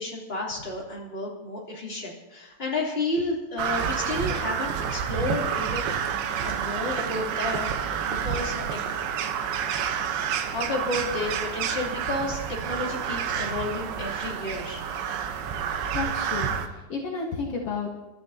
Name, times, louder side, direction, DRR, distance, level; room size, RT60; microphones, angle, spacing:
voice 1, 0.0-5.9 6.4-7.7 8.0-8.8 9.1-9.3 10.4-14.8, left 2 dB, 15° left, -3 dB, 2.5 m, -31 dB
Crow, 3.6-16.7, right 7 dB, 75° right, 2.7 m, -29 dB
voice 2, 15.9-18.1, left 4 dB, 70° left, -2 dB, 1.4 m, -32 dB
30.0 x 13.0 x 2.8 m, 1.1 s
omnidirectional pair, 4.8 m